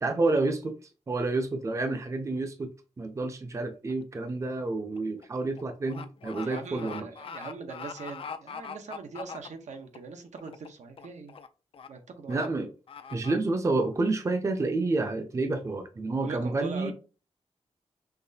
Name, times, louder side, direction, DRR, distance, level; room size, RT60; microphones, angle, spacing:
voice 1, 0.0-0.7 1.1-2.7 3.0-7.1 12.3-12.7 13.1-16.9, right 3 dB, 25° right, 0.5 m, -29 dB
sound 1, 3.9-4.1 4.5-10.0 10.4-10.7 11.0-11.5 11.7-11.9 12.3-12.5 12.9-13.4, left 6 dB, 50° left, 0.4 m, -42 dB
voice 2, 6.4-11.3 11.9-12.4 16.2-16.9, right 4 dB, 85° right, 0.8 m, -41 dB
5.8 x 3.1 x 2.7 m
wide cardioid pair, 155°, 12 cm